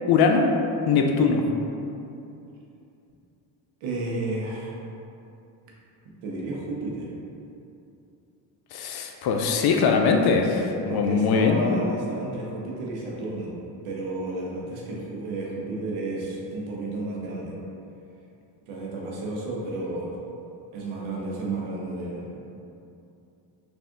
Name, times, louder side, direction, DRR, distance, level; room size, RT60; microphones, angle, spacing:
voice 1, 0.1-0.4 0.9-1.4 8.7-11.6, left 5 dB, 50° left, 3 dB, 0.5 m, -21 dB
voice 2, 3.8-4.8 6.2-7.1 10.9-13.5 13.8-17.6 18.7-20.1 20.7-22.4, right 2 dB, 75° right, -3 dB, 0.9 m, -32 dB
3.4 x 2.5 x 3.7 m, 2.7 s
supercardioid pair, 75°, 49 cm